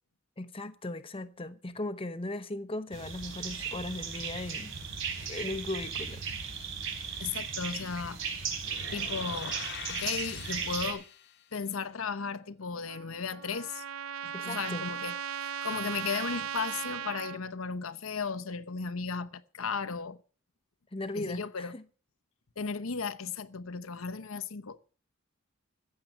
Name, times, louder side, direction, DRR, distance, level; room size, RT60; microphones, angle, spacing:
voice 1, 0.4-4.8 5.2-6.2 14.3-14.9 20.9-21.8, left 2 dB, 25° left, 1.0 m, -37 dB
sound 1, 2.9-10.9, right 6 dB, 60° right, 4.4 m, -36 dB
voice 2, 7.2-8.2 8.9-9.6 9.9-11.0 11.5-13.8 14.2-20.2 21.1-21.7 22.6-24.8, left 5 dB, 80° left, 0.9 m, -35 dB
sound 2, 8.6-11.4, left 8 dB, 55° left, 1.2 m, -43 dB
Trumpet, 12.9-17.4, right 9 dB, 85° right, 0.7 m, -37 dB
15.0 x 7.7 x 8.9 m
head